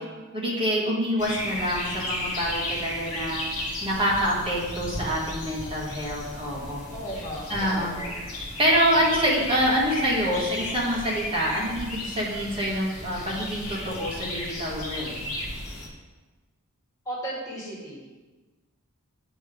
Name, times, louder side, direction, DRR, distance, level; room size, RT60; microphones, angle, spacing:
voice 1, 0.3-3.4 3.8-6.8 7.5-7.9 8.6-15.1, equal, 25° right, -5 dB, 1.4 m, -26 dB
sound 1, 1.2-15.9, left 1 dB, 65° left, 1.3 m, -34 dB
voice 2, 6.9-8.1 17.1-18.1, equal, 15° left, -6 dB, 1.9 m, -36 dB
7.9 x 3.2 x 4.9 m, 1.3 s
head